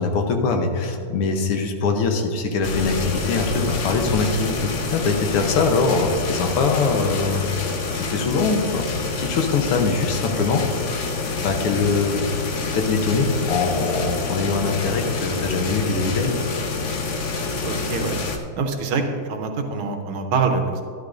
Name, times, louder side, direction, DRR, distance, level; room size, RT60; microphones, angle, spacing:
voice 1, 0.0-7.5 7.9-10.6 11.4-12.2 12.7-16.4, left 4 dB, 85° left, 4 dB, 1.9 m, -22 dB
sound 1, 2.6-18.4, left 4 dB, 70° left, 0.7 m, -27 dB
voice 2, 17.6-18.2 18.6-20.8, right 4 dB, 80° right, 4 dB, 1.8 m, -24 dB
12.5 x 11.5 x 2.6 m, 2.4 s
omnidirectional pair, 2.4 m